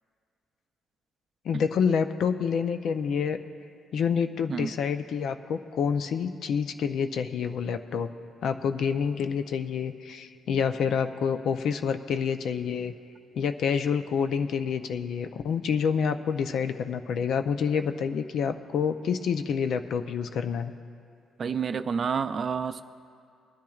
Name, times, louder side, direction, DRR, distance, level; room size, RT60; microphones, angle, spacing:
voice 1, 1.4-3.4 3.9-8.1 8.4-12.9 13.3-20.7, left 6 dB, 70° left, 9 dB, 0.5 m, -28 dB
voice 2, 21.4-22.8, right 6 dB, 50° right, 11 dB, 0.4 m, -29 dB
23.5 x 10.5 x 2.4 m, 2.3 s
cardioid pair, 90°, 0 cm